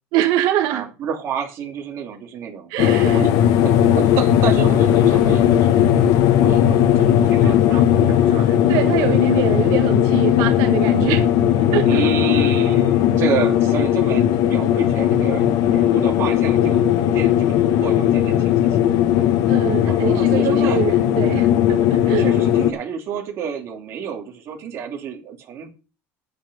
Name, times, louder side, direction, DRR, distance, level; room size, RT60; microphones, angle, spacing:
voice 1, 0.1-0.9 2.7-3.2 8.7-11.3 11.7-12.0 19.5-22.3, right 12 dB, 75° right, 5 dB, 1.5 m, -24 dB
voice 2, 0.7-3.3 3.6-5.9 6.4-8.9 9.3-9.5 11.8-18.8 19.2-19.3 19.9-20.8 22.0-25.8, right 7 dB, 40° right, 2 dB, 2.6 m, -29 dB
sound 1, 2.8-22.7, left 10 dB, 65° left, 1.1 m, -17 dB
9.5 x 8.8 x 5.4 m, 0.33 s
cardioid pair, 170°, 6 cm